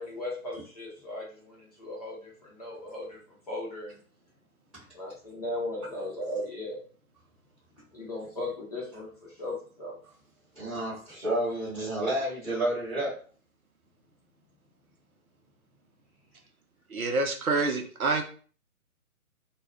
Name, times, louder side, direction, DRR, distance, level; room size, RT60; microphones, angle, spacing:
voice 1, 0.0-3.2 3.5-4.0 4.9-6.8 7.9-10.0, left 1 dB, 25° left, -4 dB, 0.6 m, -37 dB
voice 2, 10.5-13.1, right 1 dB, ahead, -16 dB, 0.9 m, -30 dB
voice 3, 16.9-18.2, right 3 dB, 75° right, 4 dB, 0.7 m, -27 dB
2.3 x 2.2 x 3.4 m, 0.42 s
figure-of-eight pair, 145°, 44 cm